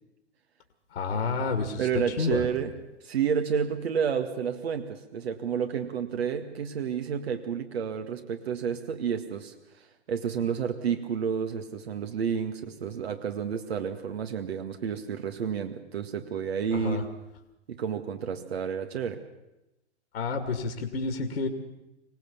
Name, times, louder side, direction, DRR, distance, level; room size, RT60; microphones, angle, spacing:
voice 1, 0.9-2.4 16.7-17.0 20.1-21.5, left 4 dB, 70° left, 6 dB, 2.4 m, -29 dB
voice 2, 1.8-2.7 3.0-17.0 17.7-19.2, right 7 dB, 65° right, 7 dB, 1.9 m, -30 dB
25.5 x 18.0 x 7.1 m, 0.93 s
figure-of-eight pair, 110°, 33 cm